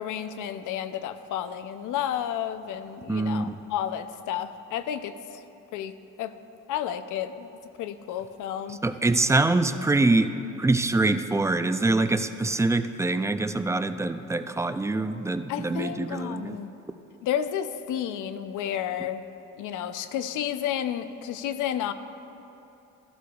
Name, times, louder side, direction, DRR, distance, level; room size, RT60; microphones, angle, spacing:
voice 1, 0.0-5.4 5.7-5.9 6.2-6.3 6.7-7.5 7.8-8.8 15.5-16.7 17.2-19.3 19.6-21.9, left 10 dB, 85° left, 11 dB, 0.6 m, -31 dB
voice 2, 3.1-3.6 8.8-16.5, right 2 dB, 10° right, 10 dB, 0.4 m, -24 dB
16.0 x 12.0 x 2.3 m, 2.9 s
cardioid pair, 90°, 30 cm